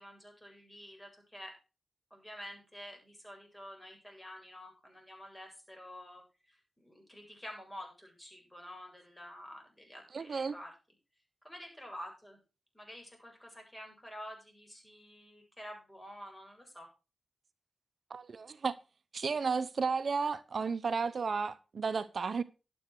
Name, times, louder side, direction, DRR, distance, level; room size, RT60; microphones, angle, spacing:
voice 1, 0.0-1.6 2.1-6.2 6.5-10.7 11.4-12.4 12.7-16.9, equal, 15° left, 7.9 m, -49 dB
voice 2, 10.1-10.6 18.1-18.7 19.1-22.4, right 5 dB, 65° right, 0.7 m, -33 dB
12.0 x 7.8 x 6.2 m
cardioid pair, 50°, 0 cm